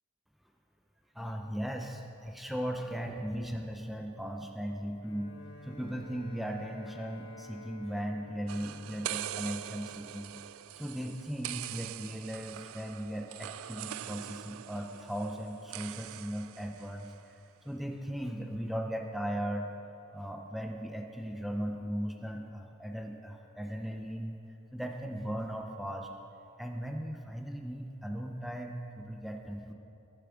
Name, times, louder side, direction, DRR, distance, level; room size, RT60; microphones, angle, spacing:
voice 1, 1.1-10.4 10.7-17.1 17.6-19.7 20.1-24.4 24.7-26.1 26.6-29.7, equal, ahead, 2 dB, 0.6 m, -37 dB
Bowed string instrument, 5.0-10.1, left 1 dB, 70° left, 1.4 m, -52 dB
sound 1, 8.5-17.2, right 12 dB, 75° right, 0.3 m, -43 dB
15.0 x 7.1 x 4.9 m, 2.7 s
head